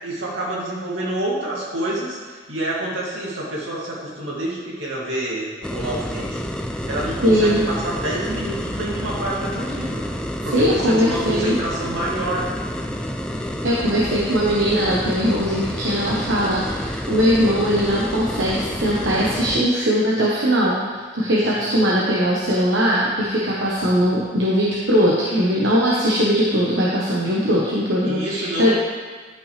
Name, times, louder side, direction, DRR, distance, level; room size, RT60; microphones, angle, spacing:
voice 1, 0.0-6.4 6.9-10.0 10.4-12.5 21.6-21.7 28.0-28.7, right 1 dB, 90° right, -5 dB, 2.4 m, -28 dB
sound 1, 5.6-19.6, equal, 5° left, 0.4 m, -29 dB
voice 2, 7.2-7.6 10.5-11.6 13.6-28.7, equal, 70° right, -6 dB, 1.1 m, -20 dB
11.0 x 5.7 x 3.3 m, 1.5 s
head